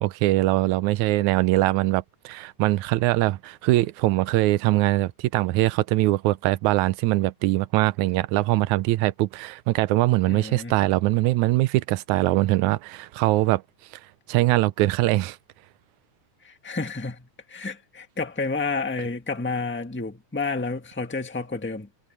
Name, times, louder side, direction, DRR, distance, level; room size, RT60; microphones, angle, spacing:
voice 1, 0.0-13.6 14.3-15.4, right 18 dB, 80° right, 2.0 m, -22 dB
voice 2, 10.3-10.7 16.4-21.9, left 3 dB, 5° left, 0.8 m, -30 dB
omnidirectional pair, 3.5 m